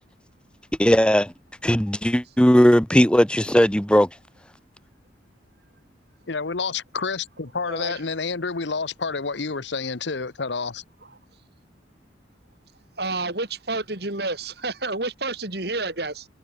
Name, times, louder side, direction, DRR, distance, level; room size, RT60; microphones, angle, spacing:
voice 1, 0.8-1.3 1.6-4.1, equal, 5° left, 1.0 m, -17 dB
voice 2, 6.3-10.8, left 4 dB, 70° left, 1.0 m, -29 dB
voice 3, 7.7-8.0 13.0-16.3, right 2 dB, 55° right, 4.4 m, -29 dB
head